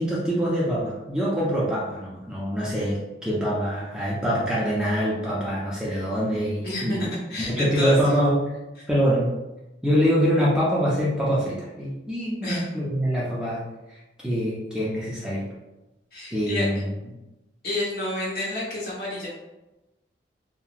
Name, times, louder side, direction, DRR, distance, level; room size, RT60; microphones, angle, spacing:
voice 1, 0.0-7.0 7.4-8.4 8.9-9.3 9.8-13.6 13.9-15.4 16.3-16.9, equal, 5° right, -7 dB, 0.4 m, -24 dB
voice 2, 6.6-8.0 12.4-12.7 16.1-16.7 17.6-19.3, left 1 dB, 55° left, -6 dB, 0.9 m, -29 dB
2.8 x 2.3 x 2.4 m, 1.0 s
head